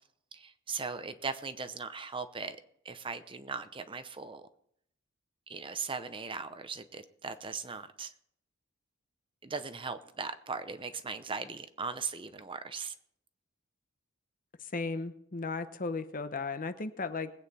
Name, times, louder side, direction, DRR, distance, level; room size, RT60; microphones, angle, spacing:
voice 1, 0.3-2.6 2.8-4.5 5.5-8.1 9.4-12.9, right 5 dB, 25° right, 10 dB, 0.7 m, -39 dB
voice 2, 14.6-17.3, left 3 dB, 40° left, 10 dB, 0.9 m, -35 dB
21.0 x 8.8 x 4.2 m, 0.70 s
head